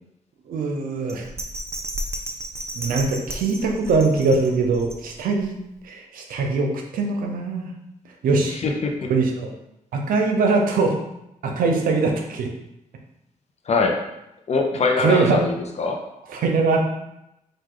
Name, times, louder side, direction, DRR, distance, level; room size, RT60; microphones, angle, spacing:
voice 1, 0.5-1.3 2.7-5.6 5.8-7.7 8.2-8.6 9.1-9.5 9.9-11.0 11.4-12.5 15.0-15.4 16.3-16.8, right 4 dB, 85° right, 2 dB, 0.7 m, -22 dB
Bell, 1.1-5.4 5.8-5.9, right 1 dB, 20° right, 0.6 m, -33 dB
voice 2, 8.6-9.1 13.7-14.0 14.5-16.0, left 4 dB, 50° left, 2 dB, 0.8 m, -22 dB
4.8 x 2.6 x 3.8 m, 0.86 s
cardioid pair, 75°, 14 cm